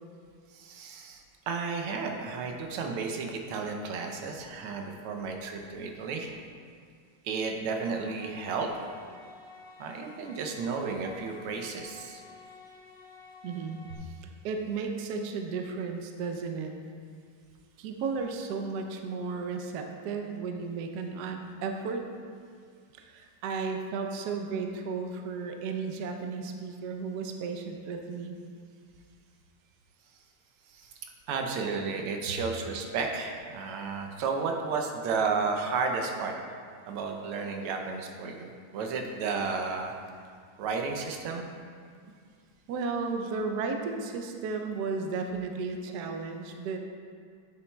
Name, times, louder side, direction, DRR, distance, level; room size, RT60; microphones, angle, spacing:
voice 1, 0.5-6.4 7.2-8.9 9.8-12.2 30.7-31.0 31.3-36.3 36.9-39.9 40.6-41.5, right 4 dB, 90° right, 3 dB, 1.6 m, -33 dB
sound 1, 7.9-14.0, left 3 dB, 65° left, 2.3 m, -51 dB
voice 2, 13.4-16.7 17.8-22.0 23.0-28.4 42.7-46.8, right 4 dB, 75° right, 4 dB, 0.9 m, -34 dB
8.6 x 7.0 x 2.2 m, 2.1 s
omnidirectional pair, 2.4 m